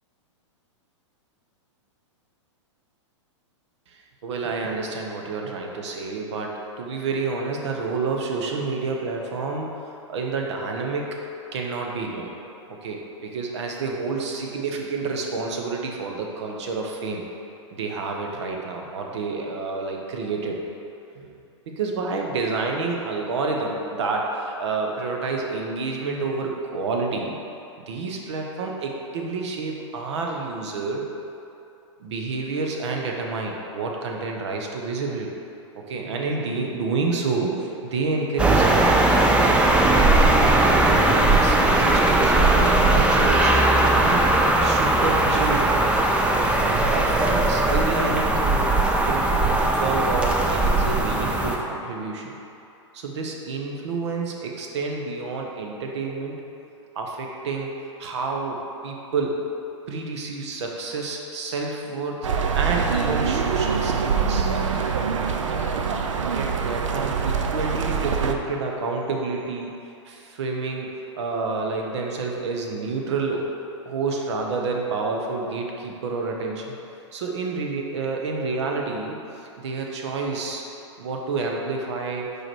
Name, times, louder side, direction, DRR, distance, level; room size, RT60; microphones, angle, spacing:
voice 1, 3.9-11.2 11.5-12.3 12.7-17.2 17.7-20.6 21.1-21.4 21.7-27.4 27.9-31.0 32.0-35.3 35.7-39.0 39.4-40.1 40.6-42.5 42.9-44.3 44.6-45.7 46.6-52.3 52.9-56.4 56.9-57.7 58.0-58.6 58.8-59.5 59.9-64.5 65.5-65.6 66.2-69.7 70.1-70.9 71.2-73.5 73.8-76.8 77.1-79.2 79.6-80.6 81.0-82.3, right 4 dB, 65° right, 1 dB, 1.0 m, -29 dB
sound 1, 38.4-51.6, right 2 dB, 5° right, 0.4 m, -19 dB
sound 2, 62.2-68.4, right 6 dB, 85° right, 0.5 m, -24 dB
5.0 x 4.7 x 4.5 m, 2.7 s
hypercardioid pair, 135°, 16 cm